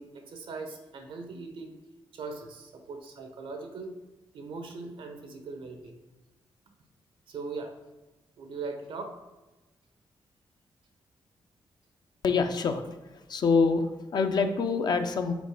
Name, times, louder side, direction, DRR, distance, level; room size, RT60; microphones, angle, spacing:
voice 1, 0.0-1.8 2.1-3.9 4.3-6.0 7.3-7.7 8.4-9.1, right 4 dB, 85° right, 4 dB, 1.0 m, -40 dB
voice 2, 12.2-12.8 13.3-15.3, left 4 dB, 55° left, 7 dB, 0.6 m, -25 dB
5.2 x 4.2 x 4.9 m, 1.1 s
wide cardioid pair, 125°, 9 cm